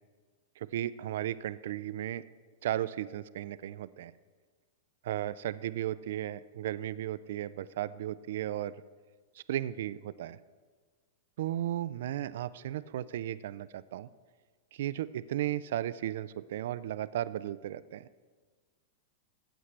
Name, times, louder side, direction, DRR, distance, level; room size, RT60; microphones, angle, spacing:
voice 1, 0.6-2.2 2.6-4.1 5.0-8.7 9.4-10.4 11.4-14.1 14.7-18.1, right 12 dB, 70° right, 17 dB, 0.3 m, -35 dB
15.0 x 8.1 x 3.2 m, 1.5 s
hypercardioid pair, 115°, 0 cm